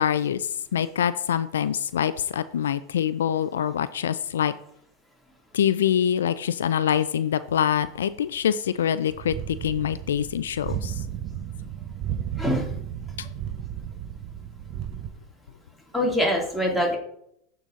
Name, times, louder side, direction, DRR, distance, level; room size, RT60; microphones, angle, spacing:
voice 1, 0.0-4.5 5.5-10.9, left 9 dB, 85° left, 14 dB, 0.3 m, -25 dB
sound 1, 9.1-15.1, right 9 dB, 45° right, 0.6 m, -34 dB
voice 2, 15.9-17.0, equal, ahead, -3 dB, 2.4 m, -23 dB
8.5 x 3.9 x 4.0 m, 0.72 s
hypercardioid pair, 105°, 0 cm